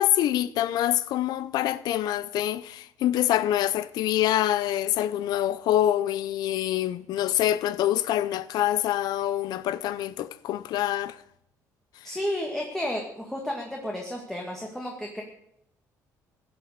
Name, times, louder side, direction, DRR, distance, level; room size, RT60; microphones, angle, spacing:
voice 1, 0.0-11.2, left 12 dB, 75° left, 0.7 m, -25 dB
voice 2, 12.0-15.2, left 1 dB, 5° left, 2.0 m, -32 dB
15.5 x 8.1 x 6.6 m
cardioid pair, 110°, 7 cm